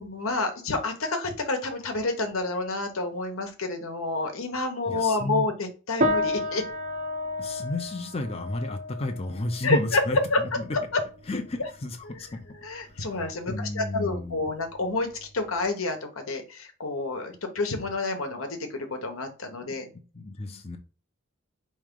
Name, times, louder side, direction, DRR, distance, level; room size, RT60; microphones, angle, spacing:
voice 1, 0.0-6.6 9.6-10.4 10.7-11.0 11.6-11.7 12.1-12.2 12.6-19.9, left 3 dB, 85° left, 1.0 m, -29 dB
voice 2, 4.9-5.5 7.4-10.8 11.3-12.4 12.9-14.5 19.7-20.8, left 2 dB, 30° left, 0.5 m, -33 dB
sound 1, 6.0-15.7, left 1 dB, 40° right, 0.6 m, -33 dB
4.6 x 3.1 x 3.7 m
head